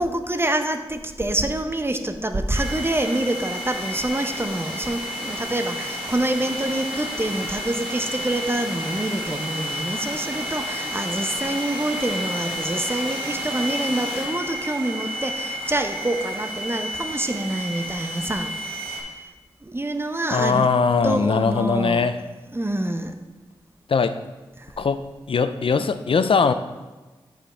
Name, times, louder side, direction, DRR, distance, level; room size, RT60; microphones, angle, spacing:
voice 1, 0.0-18.5 18.9-19.0 19.6-20.7 21.0-22.1 22.5-23.1, right 1 dB, 25° right, 8 dB, 0.7 m, -26 dB
sound 1, 2.5-19.0, equal, 70° right, 2.5 m, -31 dB
voice 2, 20.3-22.2 23.9-24.2 24.8-26.5, left 5 dB, 65° left, 11 dB, 0.4 m, -21 dB
7.5 x 5.1 x 4.4 m, 1.2 s
cardioid pair, 40°, 10 cm